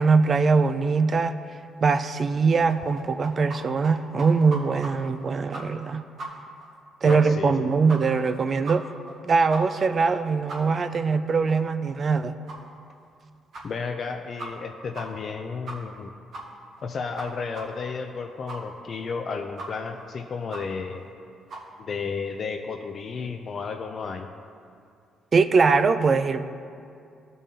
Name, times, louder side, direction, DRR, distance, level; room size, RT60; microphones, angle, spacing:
voice 1, 0.0-1.4 1.8-6.0 7.0-8.8 9.2-12.4 25.3-26.4, right 4 dB, 45° right, 10 dB, 0.3 m, -22 dB
sound 1, 2.7-3.6 3.8-3.9 4.2-4.9 5.2-5.3 5.5-5.9 6.2-6.3 6.6-6.7 7.1-7.2 7.5-7.6 7.9-8.2 8.6-8.7 9.1-9.2 9.5-9.6 10.0-10.1 10.5-10.6 11.0-11.1 11.5-11.6 11.9-12.0 12.5-12.6 13.0-13.1 13.5-13.6 14.0-14.1 14.4-14.7 14.9-15.0 15.3-15.4 15.7-16.0 16.3-16.4 16.8-16.9 17.2-17.3 17.5-17.6 18.0-18.1 18.5-18.6 19.0-19.1 19.6-19.7 20.0-20.1 20.5-20.6 21.0-21.1 21.5-21.6, right 3 dB, 65° right, 1.4 m, -37 dB
voice 2, 7.0-7.5 13.6-16.1 16.8-21.0 21.8-24.3, left 5 dB, 50° left, 4 dB, 0.4 m, -32 dB
13.5 x 5.4 x 2.8 m, 2.4 s
cardioid pair, 90°, 0 cm